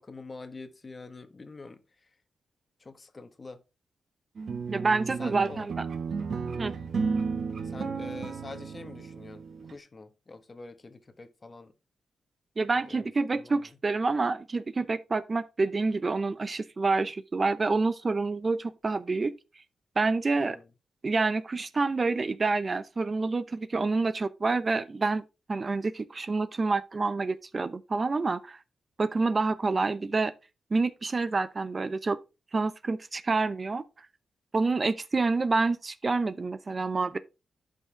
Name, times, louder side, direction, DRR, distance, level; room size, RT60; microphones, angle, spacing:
voice 1, 0.0-2.2 2.8-3.6 5.2-5.7 7.6-11.7 12.6-13.8 20.4-20.7 21.5-21.6, left 3 dB, 35° left, 1.4 m, -46 dB
sound 1, 4.4-9.7, right 5 dB, 60° right, 1.3 m, -33 dB
voice 2, 4.7-5.7 6.6-6.7 12.6-19.3 20.0-20.6 21.0-25.2 25.5-28.6 29.0-30.3 30.7-32.2 32.5-33.8 34.5-37.2, right 3 dB, 35° right, 0.7 m, -28 dB
11.0 x 5.6 x 3.5 m
cardioid pair, 75°, 0 cm